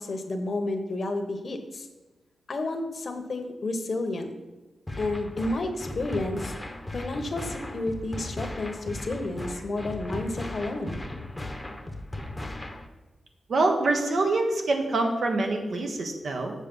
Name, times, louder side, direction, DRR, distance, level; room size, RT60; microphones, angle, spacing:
voice 1, 0.0-1.9 2.5-4.3 4.9-6.5 6.9-11.0, left 2 dB, 55° left, 6 dB, 1.0 m, -31 dB
sound 1, 4.9-12.9, left 1 dB, 15° left, 0.8 m, -37 dB
voice 2, 13.5-16.5, right 2 dB, 70° right, 3 dB, 1.3 m, -25 dB
7.4 x 6.2 x 5.3 m, 1.1 s
wide cardioid pair, 85°, 0 cm